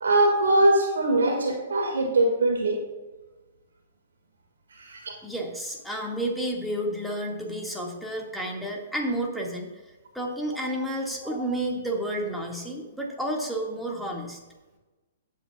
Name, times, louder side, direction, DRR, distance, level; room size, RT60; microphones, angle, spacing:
voice 1, 0.0-2.8 4.8-5.1 10.6-10.7 11.2-11.5, right 2 dB, 75° right, 2 dB, 1.9 m, -22 dB
voice 2, 5.2-9.7 10.1-14.4, right 1 dB, ahead, -1 dB, 1.9 m, -31 dB
17.0 x 7.4 x 2.4 m, 1.1 s
hypercardioid pair, 120°, 0 cm